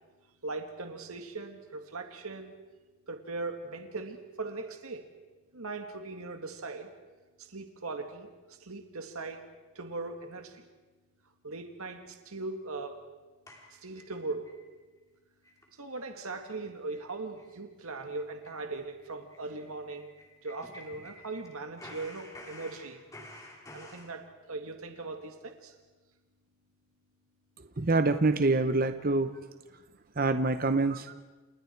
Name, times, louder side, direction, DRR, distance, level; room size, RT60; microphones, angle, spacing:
voice 1, 0.4-2.5 3.1-5.1 5.5-6.9 7.4-9.5 9.7-10.6 11.4-13.0 13.7-14.5 15.7-20.1 20.4-23.0 23.7-25.8 29.9-30.0, right 3 dB, 85° right, 5 dB, 2.1 m, -39 dB
sound 1, 13.5-14.6 15.0-15.1 15.4-15.7 15.9-16.0 16.4-16.6 16.9-17.1 17.4-17.5 17.8-21.5 21.8-24.1, left 1 dB, 15° left, 3.1 m, -50 dB
voice 2, 27.8-29.3 30.2-31.1, right 3 dB, 40° right, 9 dB, 0.8 m, -26 dB
29.5 x 28.5 x 4.6 m, 1.2 s
head